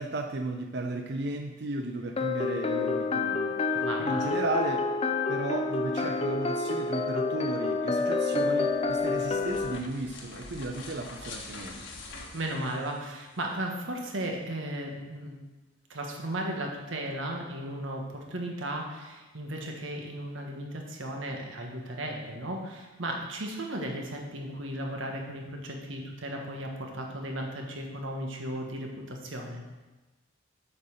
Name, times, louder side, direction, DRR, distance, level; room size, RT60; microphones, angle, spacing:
voice 1, 0.0-4.9 5.3-11.8, right 2 dB, 60° right, 4 dB, 0.6 m, -34 dB
sound 1, 2.2-9.8, left 3 dB, 30° left, 0.6 m, -28 dB
voice 2, 3.7-4.3 12.3-15.3 15.9-29.6, right 1 dB, 85° right, 1 dB, 1.6 m, -35 dB
sound 2, 8.6-13.4, left 3 dB, 75° left, 1.4 m, -45 dB
7.9 x 5.6 x 6.5 m, 1.2 s
head